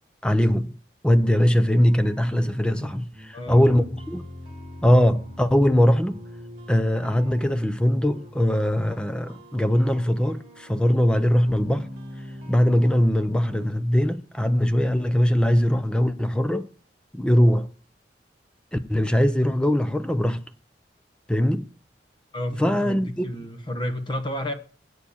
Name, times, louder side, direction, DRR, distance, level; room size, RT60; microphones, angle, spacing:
voice 1, 0.2-0.7 1.0-4.2 4.8-6.2 6.7-11.9 12.5-16.7 17.1-17.7 18.7-20.4 21.3-21.7 22.6-23.3, equal, 5° left, 0.5 m, -21 dB
sound 1, 1.7-13.7, equal, 30° right, 2.1 m, -42 dB
voice 2, 3.3-3.8 22.3-24.5, left 1 dB, 25° left, 1.1 m, -31 dB
8.3 x 7.0 x 7.1 m
head